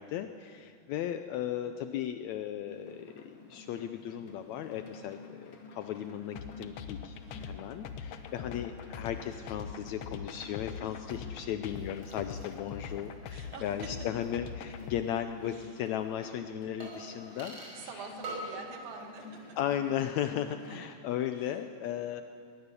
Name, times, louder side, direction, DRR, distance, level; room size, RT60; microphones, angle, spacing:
voice 1, 0.0-7.1 7.4-17.6 19.6-22.2, left 10 dB, 90° left, 8 dB, 1.6 m, -36 dB
sound 1, 2.7-20.9, left 3 dB, 45° left, 2.7 m, -51 dB
sound 2, 6.4-15.0, left 7 dB, 70° left, 1.5 m, -42 dB
voice 2, 7.3-7.7 10.8-11.0 13.3-13.6 15.5-15.7 17.3-19.2 20.7-20.8 21.4-21.6, right 5 dB, 85° right, 3 dB, 3.7 m, -47 dB
sound 3, 11.6-15.0 15.3-15.4 16.8-17.9 18.2-18.7 18.9-19.5 19.8-19.9, right 2 dB, 35° right, 6.4 m, -47 dB
21.5 x 19.5 x 6.9 m, 2.3 s
omnidirectional pair, 4.0 m